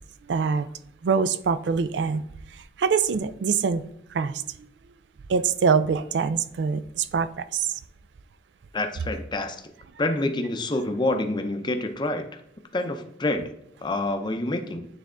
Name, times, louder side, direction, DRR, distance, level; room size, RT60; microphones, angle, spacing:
voice 1, 0.3-0.7 1.0-2.2 2.8-3.8 4.1-4.7 5.3-7.8, right 5 dB, 75° right, 14 dB, 0.4 m, -24 dB
voice 2, 8.7-9.6 10.0-12.3 12.7-13.5 13.8-14.9, left 2 dB, 25° left, 6 dB, 0.6 m, -27 dB
9.4 x 3.5 x 3.7 m, 0.75 s
head